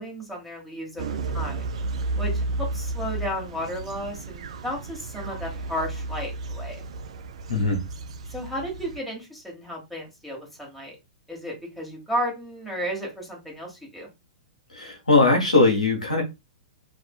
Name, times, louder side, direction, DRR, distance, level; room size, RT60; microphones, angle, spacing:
voice 1, 0.0-1.7 2.2-6.8 8.3-10.9 11.3-14.1, equal, ahead, 1.2 m, -33 dB
sound 1, 1.0-9.0, right 3 dB, 60° right, 0.3 m, -32 dB
voice 2, 7.5-7.8 14.7-16.2, left 3 dB, 85° left, 1.0 m, -20 dB
2.5 x 2.4 x 2.3 m
figure-of-eight pair, 105°, 4 cm